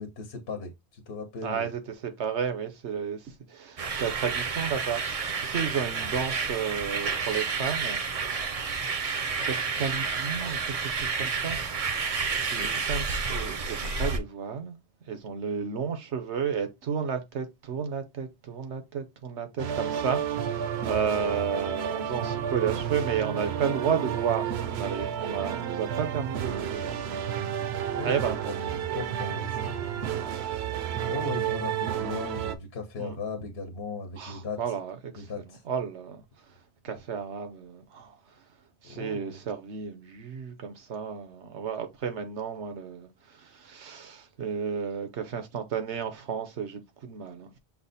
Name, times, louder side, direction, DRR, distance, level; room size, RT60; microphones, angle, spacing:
voice 1, 0.0-1.7 27.9-28.1 28.5-30.6 30.9-34.6 35.2-35.6 36.9-37.0 38.8-39.4, left 4 dB, 65° left, 1.2 m, -38 dB
voice 2, 1.4-8.4 9.3-14.8 15.1-27.2 28.0-28.8 29.5-29.7 33.0-33.2 34.2-36.5 36.8-38.4 38.8-47.6, right 7 dB, 90° right, 1.2 m, -33 dB
sound 1, 3.8-14.2, right 5 dB, 45° right, 0.5 m, -30 dB
sound 2, 19.6-32.6, right 9 dB, 70° right, 0.9 m, -31 dB
5.8 x 2.1 x 4.1 m
omnidirectional pair, 1.1 m